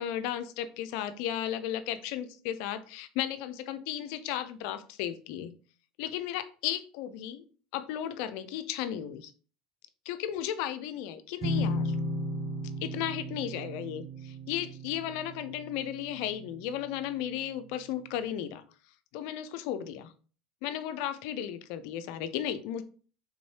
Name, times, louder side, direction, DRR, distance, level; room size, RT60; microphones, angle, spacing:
voice 1, 0.0-5.5 6.0-7.4 7.7-9.3 10.1-12.0 12.8-18.6 19.1-20.1 20.6-22.8, left 11 dB, 70° left, 11 dB, 0.4 m, -35 dB
sound 1, 11.4-17.0, left 1 dB, 40° right, 0.7 m, -35 dB
3.6 x 3.1 x 2.7 m, 0.40 s
hypercardioid pair, 85°, 0 cm